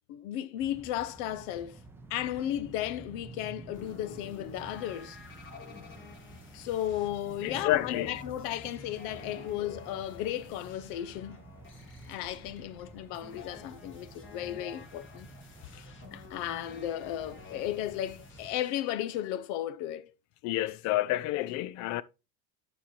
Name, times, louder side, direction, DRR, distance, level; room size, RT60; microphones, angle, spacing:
voice 1, 0.1-1.8 2.1-5.2 6.5-11.4 12.1-15.3 16.1-20.1, left 12 dB, 60° left, 0.8 m, -35 dB
sound 1, 0.6-18.6, right 2 dB, 5° right, 0.6 m, -50 dB
sound 2, 3.7-19.4, left 5 dB, 25° left, 1.4 m, -51 dB
voice 2, 7.4-8.1 15.7-15.8 20.4-22.0, left 15 dB, 40° left, 0.4 m, -29 dB
9.1 x 5.8 x 3.1 m
cardioid pair, 150°, 47 cm